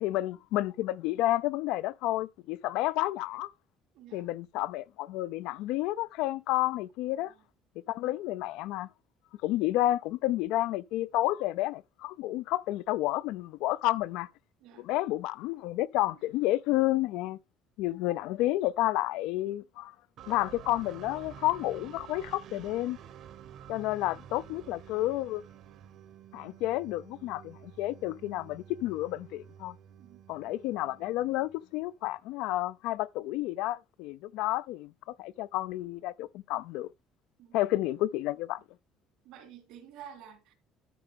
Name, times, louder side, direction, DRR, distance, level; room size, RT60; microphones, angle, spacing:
voice 1, 0.0-3.5 4.1-7.3 7.9-8.9 9.4-14.3 14.8-17.4 17.8-19.9 20.3-23.0 23.7-25.4 26.3-29.8 30.3-36.9 37.5-38.6, left 16 dB, 85° left, 0.4 m, -30 dB
voice 2, 4.0-4.3 7.2-7.4 8.0-8.2 14.6-14.9 22.5-22.7 30.0-30.2 37.4-37.8 39.2-40.5, right 9 dB, 80° right, 3.8 m, -51 dB
sound 1, 20.2-31.9, right 9 dB, 60° right, 1.1 m, -50 dB
13.0 x 4.9 x 3.5 m
cardioid pair, 130°, 0 cm